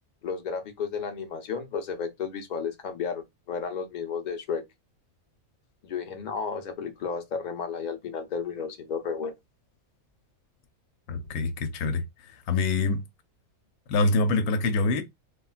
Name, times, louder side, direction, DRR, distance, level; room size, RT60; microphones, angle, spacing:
voice 1, 0.2-4.6 5.8-9.3, left 6 dB, 60° left, 0.4 m, -33 dB
voice 2, 11.1-12.0 12.5-13.0 13.9-15.0, left 3 dB, 90° left, 1.1 m, -25 dB
3.4 x 2.2 x 2.4 m
omnidirectional pair, 1.5 m